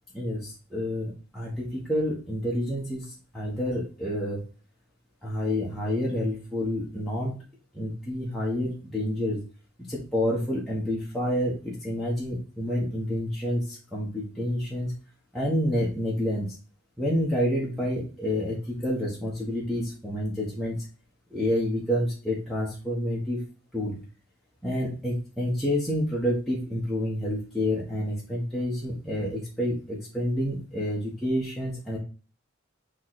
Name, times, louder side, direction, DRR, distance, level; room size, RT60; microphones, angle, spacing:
voice 1, 0.1-4.4 5.2-7.4 7.7-9.4 9.9-14.9 15.3-16.6 17.0-20.8 21.3-23.4 23.7-24.0 24.6-32.0, equal, ahead, -7 dB, 1.4 m, -28 dB
7.1 x 3.3 x 4.2 m, 0.37 s
head